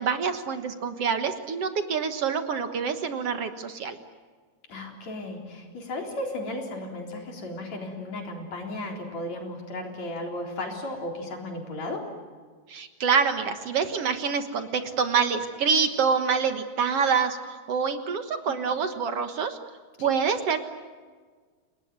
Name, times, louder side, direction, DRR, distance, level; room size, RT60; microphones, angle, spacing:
voice 1, 0.0-4.0 12.7-19.6 20.0-20.6, right 6 dB, 55° right, 8 dB, 2.1 m, -26 dB
voice 2, 4.7-12.1 18.5-18.8 20.0-20.1, left 1 dB, 55° left, 1 dB, 5.1 m, -35 dB
29.5 x 19.5 x 9.5 m, 1.5 s
omnidirectional pair, 3.7 m